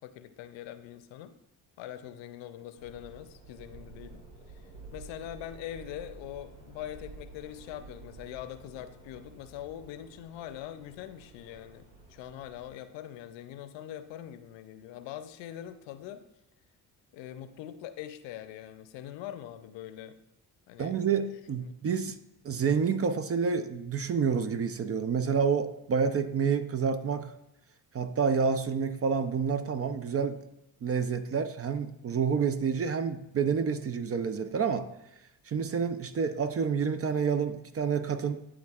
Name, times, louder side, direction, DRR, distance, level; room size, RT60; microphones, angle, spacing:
voice 1, 0.0-1.3 1.8-16.3 17.1-20.2 20.7-21.0 21.6-21.7, left 11 dB, 65° left, 11 dB, 0.7 m, -43 dB
sound 1, 2.7-12.7, right 3 dB, 90° right, 1.4 m, -51 dB
voice 2, 20.8-22.2 22.4-27.3 27.9-30.4 30.8-34.9 35.5-38.4, right 6 dB, 30° right, 11 dB, 0.5 m, -28 dB
11.0 x 3.6 x 2.4 m, 0.87 s
hypercardioid pair, 55°, 48 cm